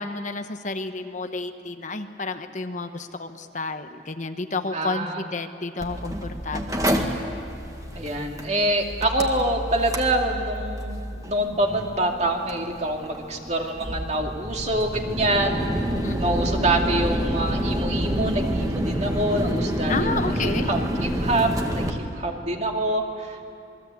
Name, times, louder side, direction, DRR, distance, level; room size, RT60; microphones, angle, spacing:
voice 1, 0.0-6.9 16.0-16.4 19.9-20.7, left 3 dB, 45° left, 7 dB, 1.1 m, -31 dB
voice 2, 4.7-5.3 7.9-11.0 11.2-15.6 16.2-23.4, right 1 dB, 40° right, 2 dB, 2.5 m, -26 dB
Mechanical fan, 5.8-21.9, equal, 20° right, 1.9 m, -28 dB
27.5 x 21.5 x 8.4 m, 2.6 s
head